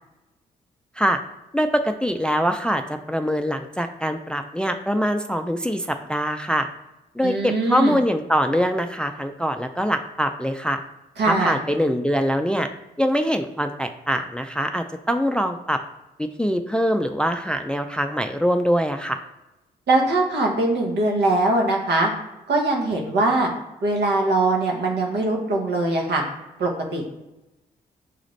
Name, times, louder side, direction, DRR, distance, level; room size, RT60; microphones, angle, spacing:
voice 1, 1.5-6.7 7.2-10.8 11.3-12.7 13.0-15.8 16.2-19.2, equal, 5° left, 6 dB, 0.4 m, -23 dB
voice 2, 7.2-8.0 11.2-11.6 19.9-22.1 22.5-23.5 23.8-26.2 26.6-27.0, right 2 dB, 65° right, 0 dB, 1.0 m, -21 dB
6.0 x 2.4 x 3.2 m, 0.99 s
supercardioid pair, 45°, 18 cm